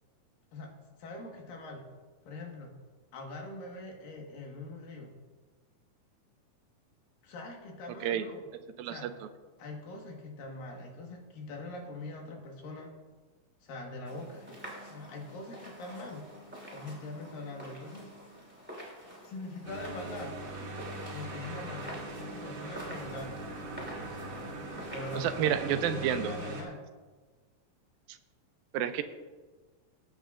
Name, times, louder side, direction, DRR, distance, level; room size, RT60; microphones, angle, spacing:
voice 1, 1.0-1.9 2.2-2.7 3.1-5.1 7.2-8.5 8.9-9.1 9.6-12.9 13.6-14.5 14.8-16.3 16.7-18.1 19.2-20.3 21.0-23.3 24.0-24.4 24.9-26.8, left 2 dB, 70° left, 1 dB, 3.2 m, -42 dB
voice 2, 8.8-9.1 25.2-26.3 28.1-28.2 28.7-29.0, right 10 dB, 85° right, 10 dB, 2.3 m, -30 dB
sound 1, 14.0-25.5, equal, 5° right, 2.0 m, -48 dB
sound 2, 19.6-26.6, right 1 dB, 60° right, 3.0 m, -41 dB
19.5 x 9.0 x 2.5 m, 1.3 s
omnidirectional pair, 4.2 m